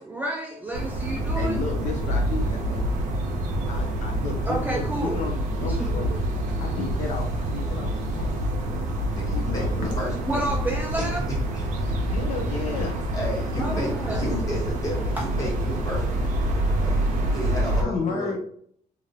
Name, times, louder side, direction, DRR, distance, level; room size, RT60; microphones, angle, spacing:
voice 1, 0.0-1.6 4.5-5.2 5.7-6.2 6.5-6.6 10.3-11.3 13.6-14.3 15.2-15.3, right 1 dB, 10° right, 0 dB, 0.3 m, -30 dB
sound 1, 0.7-17.8, right 1 dB, 60° right, 0.7 m, -26 dB
voice 2, 1.4-2.9 3.7-6.1 6.6-8.5 9.3-9.9 12.1-13.0 17.8-18.4, left 4 dB, 55° left, 2 dB, 0.5 m, -33 dB
voice 3, 9.1-10.4 11.0-11.7 13.1-18.4, left 1 dB, 25° left, -4 dB, 1.3 m, -33 dB
2.9 x 2.5 x 2.7 m, 0.63 s
cardioid pair, 145°, 14 cm